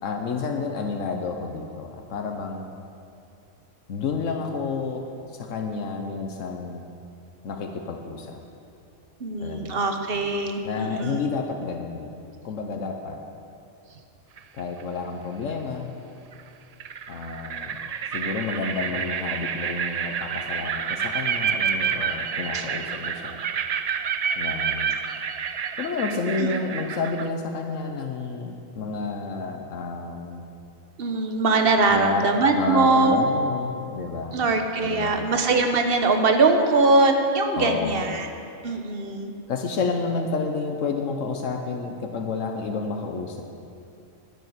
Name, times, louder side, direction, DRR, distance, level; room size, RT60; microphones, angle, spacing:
voice 1, 0.0-2.8 3.9-5.1 5.3-6.9 7.4-8.4 9.4-9.9 10.6-12.1 12.4-13.2 14.5-16.0 17.1-17.8 18.1-23.4 24.4-25.0 25.8-30.4 31.9-34.4 34.8-35.3 37.6-38.1 39.5-43.5, left 4 dB, 90° left, 3 dB, 1.3 m, -30 dB
voice 2, 9.2-11.2 22.5-22.6 26.4-26.5 31.0-33.2 34.3-38.3 38.6-39.3, right 3 dB, 50° right, 5 dB, 1.3 m, -22 dB
sound 1, 14.4-14.8 16.3-16.4 16.8-27.3, right 7 dB, 70° right, 0.3 m, -29 dB
11.0 x 8.9 x 9.5 m, 2.6 s
omnidirectional pair, 1.3 m